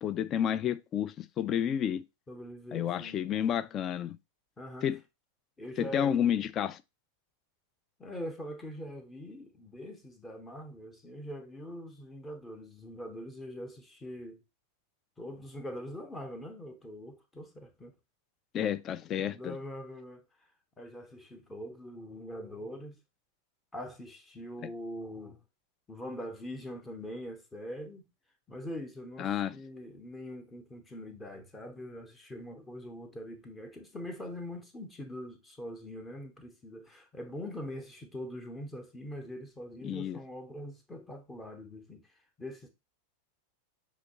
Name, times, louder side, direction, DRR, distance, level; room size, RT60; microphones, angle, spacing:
voice 1, 0.0-2.0 2.7-4.2 4.8-5.0 5.8-6.8 18.5-19.6 29.2-29.6 39.8-40.2, left 9 dB, 30° left, 0.3 m, -30 dB
voice 2, 2.3-3.4 4.6-4.9 5.6-6.3 8.0-14.4 15.2-17.9 19.2-20.2 20.8-23.0 23.7-25.4 25.9-28.1 28.5-42.0 42.4-42.7, equal, 15° left, 0.9 m, -43 dB
5.8 x 2.9 x 2.9 m
figure-of-eight pair, 90°, 0 cm